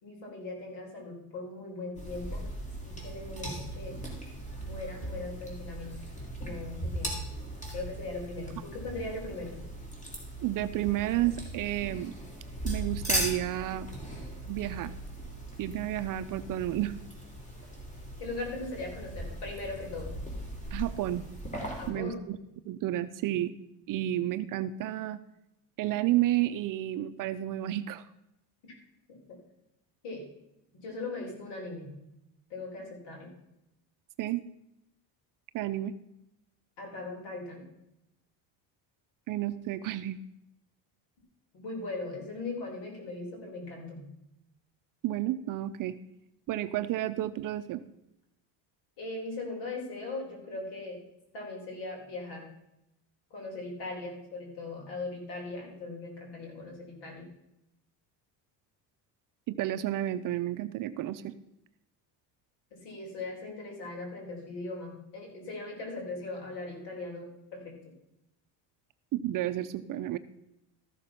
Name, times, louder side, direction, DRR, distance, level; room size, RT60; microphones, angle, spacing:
voice 1, 0.0-2.5 2.8-4.0 4.6-5.9 6.4-7.1 7.7-9.6 18.2-20.1 21.8-22.2 29.3-29.4 30.0-30.2 30.8-31.9 32.5-33.3 36.8-37.7 41.5-44.0 49.0-51.0 51.3-52.4 53.3-57.3 62.7-67.7, left 2 dB, 70° left, 0 dB, 4.3 m, -39 dB
sound 1, 2.0-21.9, right 1 dB, 15° left, 3.3 m, -38 dB
voice 2, 10.4-12.1 12.6-13.9 14.5-14.9 15.6-17.0 20.7-21.2 21.9-22.4 22.7-23.5 23.9-25.2 25.8-28.1 34.2-34.4 35.5-35.9 39.3-40.2 45.0-45.9 46.5-47.8 59.5-61.3 69.1-70.2, right 14 dB, 50° right, 11 dB, 0.5 m, -31 dB
13.5 x 6.7 x 5.7 m, 0.86 s
cardioid pair, 140°, 42 cm